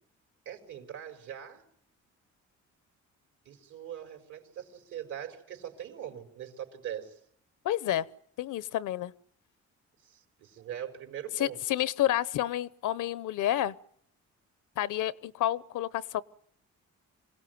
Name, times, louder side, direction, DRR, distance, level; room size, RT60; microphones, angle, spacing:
voice 1, 0.4-1.6 3.4-7.2 10.0-11.6, right 10 dB, 80° right, 5 dB, 4.5 m, -41 dB
voice 2, 7.6-8.1 8.4-9.1 11.4-13.7 14.8-16.2, left 13 dB, 80° left, 19 dB, 0.9 m, -29 dB
26.0 x 17.5 x 9.4 m, 0.70 s
cardioid pair, 90°, 30 cm